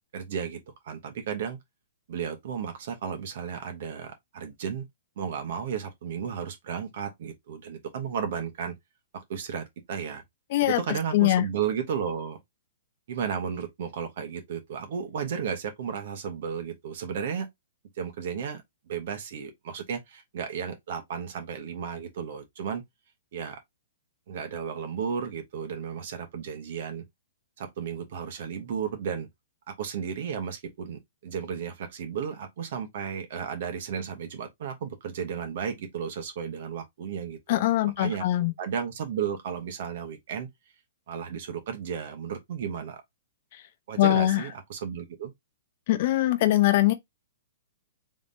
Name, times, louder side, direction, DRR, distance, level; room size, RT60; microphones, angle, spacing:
voice 1, 0.1-1.6 2.1-4.8 5.2-8.7 9.1-10.2 10.6-12.4 13.1-17.5 18.0-18.6 18.9-22.8 23.3-23.6 24.3-27.0 27.6-29.3 29.7-37.6 38.0-38.2 38.6-40.5 41.1-43.0 43.9-45.3, right 7 dB, 60° right, 1.0 m, -34 dB
voice 2, 11.1-11.4 37.5-38.5 44.0-44.4 45.9-46.9, left 15 dB, 50° left, 0.7 m, -22 dB
3.7 x 3.7 x 2.6 m
hypercardioid pair, 125°, 0 cm